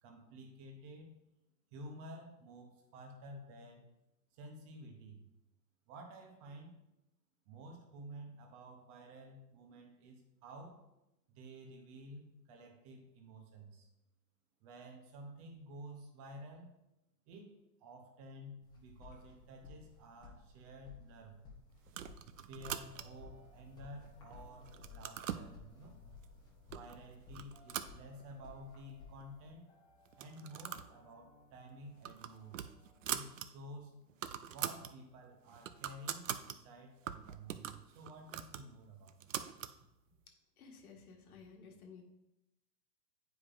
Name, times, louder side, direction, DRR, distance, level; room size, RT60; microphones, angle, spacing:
voice 1, 0.0-1.1 1.7-3.8 4.3-5.2 5.9-6.7 7.5-10.8 11.3-13.9 14.6-16.7 17.3-17.6 17.8-21.4 22.5-26.0 26.7-29.6 30.1-32.6 33.1-34.0 34.5-39.3 39.7-39.8, right 1 dB, 20° right, 3 dB, 0.7 m, -52 dB
sound 1, 18.6-29.5, left 4 dB, 10° left, 0.9 m, -57 dB
sound 2, 21.9-23.3 23.8-24.3 24.6-25.5 26.2-26.3 26.7-27.0 27.3-28.6 28.9-29.0 29.2-29.3 30.1-30.9 31.2-31.4 31.8-33.5 33.8-33.9 34.1-34.9 35.3-36.6 37.1-39.8, right 10 dB, 55° right, 0.5 m, -43 dB
sound 3, 23.0-35.4, left 4 dB, 40° left, 1.0 m, -69 dB
voice 2, 40.6-42.0, left 5 dB, 60° left, 2 dB, 1.5 m, -55 dB
9.2 x 4.9 x 2.5 m, 0.89 s
hypercardioid pair, 140°, 50 cm